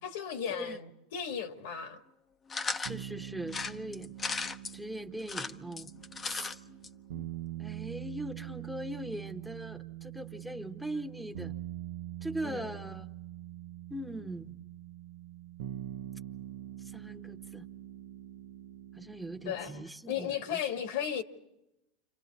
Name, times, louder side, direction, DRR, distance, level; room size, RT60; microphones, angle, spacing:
voice 1, 0.0-2.0 12.4-12.8 19.4-21.2, left 8 dB, 75° left, 1.9 m, -35 dB
sound 1, 2.5-3.0 3.5-4.7 5.2-6.5 6.8-6.9 7.1-7.2, left 4 dB, 25° left, 0.9 m, -36 dB
voice 2, 2.7-5.9 6.2-6.6 7.6-11.5 12.2-13.1 13.9-14.5 16.8-17.7 18.9-20.6, right 1 dB, 5° right, 1.2 m, -41 dB
sound 2, 2.9-19.9, right 13 dB, 75° right, 0.8 m, -44 dB
30.0 x 27.0 x 4.2 m
hypercardioid pair, 105°, 0 cm